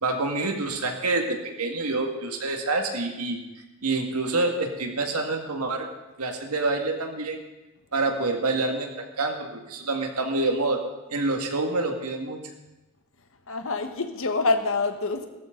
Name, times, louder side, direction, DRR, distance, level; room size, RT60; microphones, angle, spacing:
voice 1, 0.0-3.4 3.8-5.9 6.2-7.4 7.9-10.8 11.1-12.4, right 2 dB, 80° right, 3 dB, 2.1 m, -27 dB
voice 2, 13.5-15.3, left 3 dB, 65° left, 7 dB, 1.4 m, -26 dB
18.0 x 13.5 x 3.9 m, 1.1 s
head